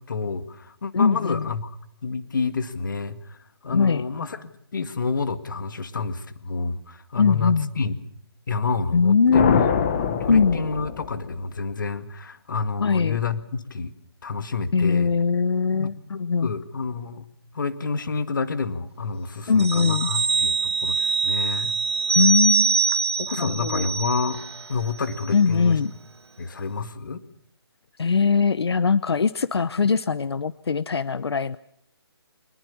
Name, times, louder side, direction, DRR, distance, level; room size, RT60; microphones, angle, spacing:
voice 1, 0.0-1.7 2.0-3.4 3.6-8.0 8.5-9.7 10.0-13.9 14.2-15.1 15.7-17.3 17.5-21.8 23.2-24.4 24.7-25.8 26.4-27.2, left 4 dB, 50° left, 11 dB, 1.9 m, -29 dB
voice 2, 0.9-1.5 3.7-4.0 7.2-7.7 8.9-9.6 10.3-10.6 12.8-13.2 14.7-16.5 19.5-20.1 22.2-22.8 23.4-23.9 25.3-25.9 28.0-31.6, left 5 dB, 80° left, 17 dB, 0.8 m, -21 dB
sound 1, 9.3-11.6, left 7 dB, 20° left, 1.2 m, -24 dB
sound 2, 19.6-24.7 25.0-25.2, right 4 dB, 90° right, 1.5 m, -24 dB
24.5 x 20.0 x 7.1 m, 0.71 s
hypercardioid pair, 175°, 13 cm